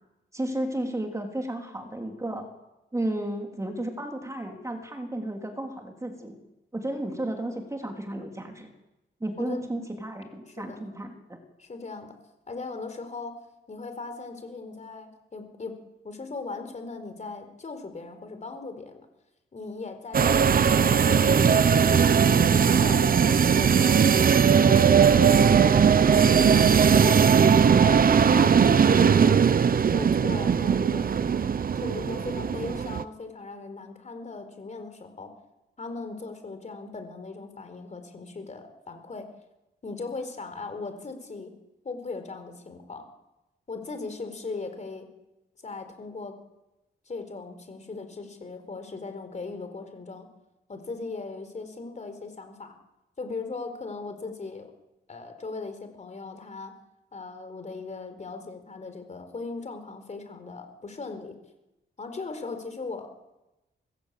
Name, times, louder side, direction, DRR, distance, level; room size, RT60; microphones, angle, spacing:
voice 1, 0.3-2.5 2.9-6.4 6.7-8.7 9.2-11.4, right 1 dB, 15° right, 3 dB, 3.3 m, -33 dB
voice 2, 10.5-10.8 11.6-12.1 12.5-13.3 13.7-15.8 16.0-19.0 19.5-22.3 22.8-27.3 27.7-28.0 28.3-31.1 31.8-35.3 35.8-39.3 39.8-41.5 41.8-43.0 43.7-45.0 45.6-46.3 47.1-50.2 50.7-52.7 53.2-54.7 55.1-56.7 57.1-61.3 62.0-63.1, left 3 dB, 35° left, 7 dB, 4.4 m, -38 dB
sound 1, 20.1-33.0, right 7 dB, 50° right, 0.8 m, -19 dB
26.0 x 20.5 x 8.4 m, 0.97 s
wide cardioid pair, 135°, 19 cm